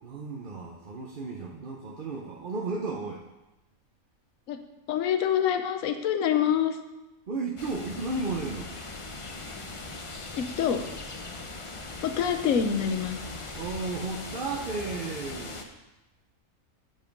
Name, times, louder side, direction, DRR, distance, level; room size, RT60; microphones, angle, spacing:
voice 1, 0.0-3.3 7.3-8.7 13.5-15.6, right 3 dB, 45° right, -2 dB, 0.9 m, -34 dB
voice 2, 4.9-6.8 10.3-10.8 12.0-13.2, left 8 dB, 70° left, 8 dB, 1.2 m, -26 dB
sound 1, 7.6-15.6, left 3 dB, 30° left, 0.6 m, -40 dB
7.7 x 7.4 x 5.3 m, 1.0 s
omnidirectional pair, 1.5 m